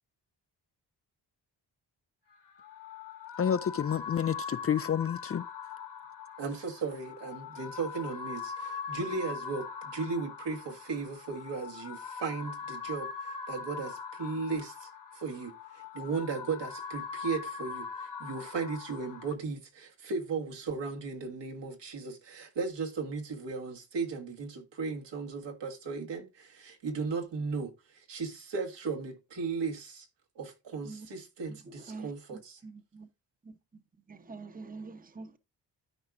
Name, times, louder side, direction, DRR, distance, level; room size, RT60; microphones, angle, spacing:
sound 1, 2.3-19.3, left 6 dB, 65° left, 2.0 m, -41 dB
voice 1, 3.4-5.5, left 8 dB, 35° left, 0.4 m, -29 dB
voice 2, 6.4-15.5 15.9-30.1 30.3-32.6, right 4 dB, 75° right, 1.7 m, -36 dB
voice 3, 31.5-33.1 33.4-33.8 34.1-35.4, right 3 dB, 20° right, 0.9 m, -46 dB
13.0 x 4.6 x 2.5 m
cardioid pair, 60°, 43 cm